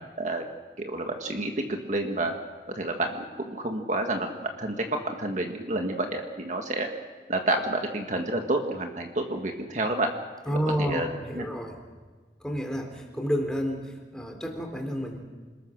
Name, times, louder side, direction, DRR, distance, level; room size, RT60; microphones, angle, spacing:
voice 1, 0.8-2.3 2.7-6.9 7.3-10.1 10.8-11.1 11.4-11.5, right 2 dB, 45° right, 3 dB, 1.8 m, -29 dB
voice 2, 10.5-11.8 12.4-15.2, equal, 5° left, 3 dB, 3.5 m, -30 dB
27.5 x 20.5 x 6.5 m, 1.4 s
head